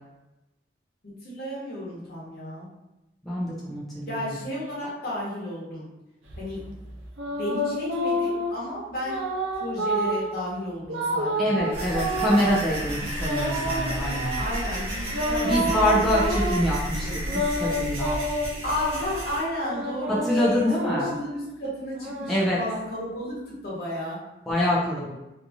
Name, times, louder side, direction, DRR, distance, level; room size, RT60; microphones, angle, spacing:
voice 1, 1.2-2.7 4.1-5.9 6.4-6.6 7.4-9.2 9.5-12.5 14.4-16.5 17.0-17.2 18.6-24.2, equal, 55° left, -6 dB, 1.0 m, -33 dB
voice 2, 3.2-4.4 11.4-14.4 15.4-17.1 17.3-18.2 20.2-21.1 22.3-22.6 24.5-25.2, left 1 dB, ahead, -8 dB, 0.4 m, -25 dB
sound 1, 6.3-8.6 9.0-10.3 10.9-12.6 13.2-14.6 15.1-16.7 17.2-19.1 19.6-21.3 21.9-23.3, right 1 dB, 90° right, 0.6 m, -29 dB
sound 2, 11.7-19.4, equal, 30° right, 0.8 m, -32 dB
2.7 x 2.4 x 2.7 m, 0.95 s
head